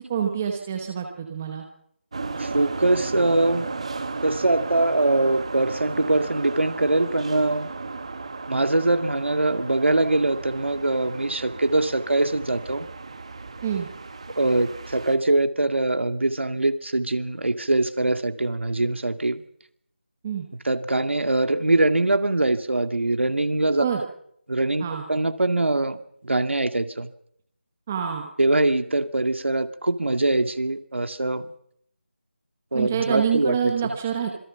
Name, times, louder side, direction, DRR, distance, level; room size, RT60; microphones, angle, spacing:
voice 1, 0.1-1.6 13.6-13.9 20.2-20.5 23.8-24.0 24.8-25.0 27.9-28.3 32.7-34.3, right 8 dB, 10° right, 3 dB, 0.9 m, -26 dB
sound 1, 2.1-15.2, right 3 dB, 30° right, 1.7 m, -35 dB
voice 2, 2.4-3.7 4.2-7.7 8.5-12.9 14.4-19.4 20.6-23.9 24.5-27.1 28.4-31.5 32.7-33.7, right 2 dB, 75° right, 9 dB, 2.2 m, -23 dB
26.5 x 21.5 x 5.8 m, 0.71 s
figure-of-eight pair, 180°, 6 cm